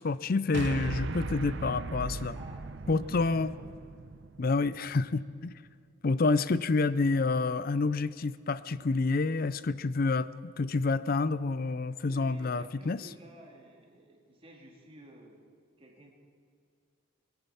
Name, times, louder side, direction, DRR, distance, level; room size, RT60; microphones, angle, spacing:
voice 1, 0.0-2.4 2.9-3.5 4.4-5.5 6.0-13.0, left 3 dB, 45° left, 17 dB, 0.4 m, -28 dB
sound 1, 0.5-5.0, right 3 dB, 60° right, 0.6 m, -38 dB
voice 2, 2.3-3.7 12.1-15.4 15.8-16.1, right 1 dB, 25° right, 1 dB, 2.0 m, -53 dB
23.0 x 10.5 x 5.6 m, 2.1 s
head